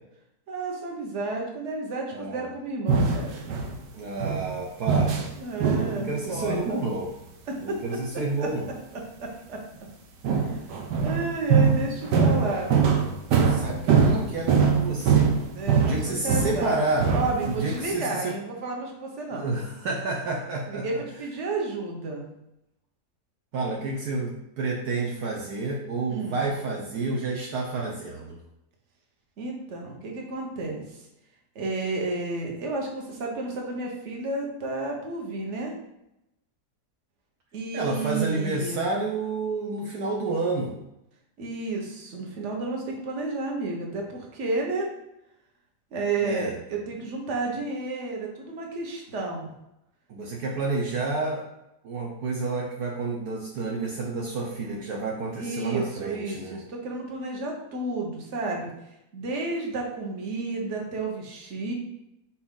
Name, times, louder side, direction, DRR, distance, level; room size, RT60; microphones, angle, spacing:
voice 1, 0.5-3.6 5.4-6.8 7.5-7.8 8.4-8.5 9.2-9.6 10.4-10.6 11.0-12.8 15.5-16.0 16.2-19.5 20.7-22.2 26.1-26.4 29.4-30.8 31.5-35.7 37.5-38.8 41.4-44.9 45.9-49.5 55.4-58.7 59.1-61.7, right 3 dB, 45° right, 0 dB, 1.4 m, -31 dB
voice 2, 2.1-2.5 3.9-5.3 5.9-7.1 7.6-8.7 13.5-15.3 15.8-17.1 17.5-18.3 19.3-21.0 23.5-28.4 37.7-40.8 46.2-46.6 50.1-51.5 51.8-56.6, right 3 dB, 70° right, -1 dB, 1.3 m, -30 dB
sound 1, 2.9-3.7 4.2-4.5 4.9-5.3 5.6-6.0 6.3-6.6 10.2-16.7 17.0-17.8, right 6 dB, 90° right, 1.5 m, -22 dB
6.3 x 4.3 x 3.7 m, 0.87 s
omnidirectional pair, 1.8 m